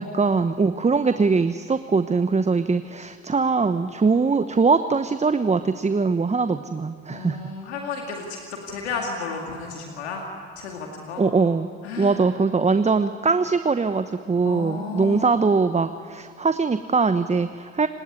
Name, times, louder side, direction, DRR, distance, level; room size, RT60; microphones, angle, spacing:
voice 1, 0.0-7.4 11.2-11.7 12.0-17.9, right 4 dB, 20° right, 10 dB, 1.0 m, -22 dB
voice 2, 7.1-10.2 10.6-11.2 11.8-12.2 14.4-15.4, left 4 dB, 90° left, 1 dB, 2.2 m, -33 dB
28.0 x 18.5 x 9.7 m, 2.2 s
hypercardioid pair, 55°, 32 cm